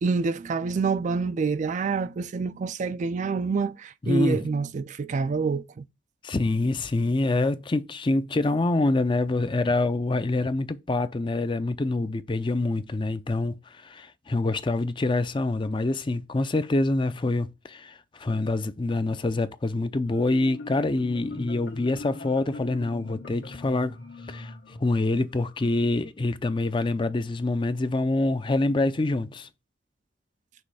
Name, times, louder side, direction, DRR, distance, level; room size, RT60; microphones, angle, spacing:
voice 1, 0.0-5.8, right 4 dB, 40° right, 0.3 m, -27 dB
voice 2, 4.0-4.4 6.2-24.0 24.3-24.5 24.8-29.5, left 2 dB, 25° left, 0.5 m, -26 dB
Marimba xylophone, 20.1-25.6, left 2 dB, 90° left, 1.7 m, -41 dB
6.2 x 3.2 x 4.8 m
head